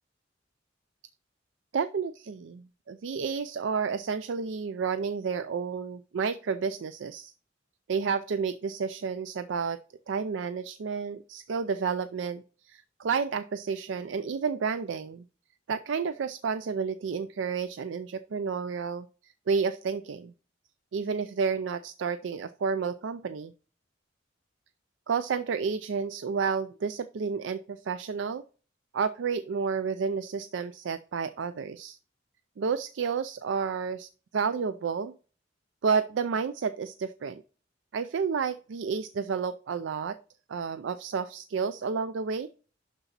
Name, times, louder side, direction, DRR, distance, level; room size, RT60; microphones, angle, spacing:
voice 1, 1.7-7.3 7.9-9.8 10.1-15.2 15.7-19.1 19.5-20.3 20.9-23.5 25.1-28.4 28.9-32.0 32.6-35.2 35.8-37.4 37.9-40.2 40.5-42.5, right 5 dB, 70° right, 12 dB, 0.4 m, -31 dB
11.5 x 4.0 x 4.0 m, 0.38 s
head